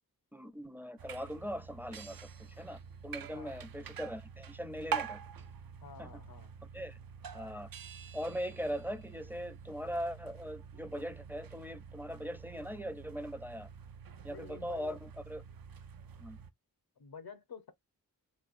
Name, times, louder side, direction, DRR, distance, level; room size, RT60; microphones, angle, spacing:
voice 1, 0.3-5.2 6.0-6.2 6.7-7.0 7.3-7.7 8.1-13.7 14.2-15.4 16.2-16.4, equal, 5° right, 0.5 m, -40 dB
sound 1, 1.0-16.5, right 7 dB, 70° right, 0.5 m, -46 dB
voice 2, 3.3-3.7 5.8-6.5 14.3-15.0 17.0-17.7, left 5 dB, 85° left, 0.9 m, -49 dB
3.3 x 3.1 x 2.5 m
wide cardioid pair, 75°, 36 cm